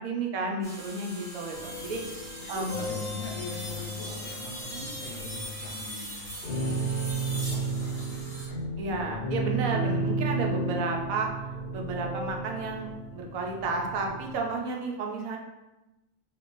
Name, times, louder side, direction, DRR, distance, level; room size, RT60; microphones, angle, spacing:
voice 1, 0.0-2.0 2.5-2.8 8.8-11.3 11.7-15.4, right 3 dB, 85° right, 1 dB, 1.0 m, -32 dB
sound 1, 0.6-8.5, equal, 5° left, 0.4 m, -40 dB
sound 2, 1.5-5.8 6.4-14.4, right 2 dB, 50° left, 0.8 m, -33 dB
voice 2, 2.4-8.7, left 1 dB, 75° left, -2 dB, 1.1 m, -43 dB
3.1 x 2.9 x 2.5 m, 0.99 s
omnidirectional pair, 1.4 m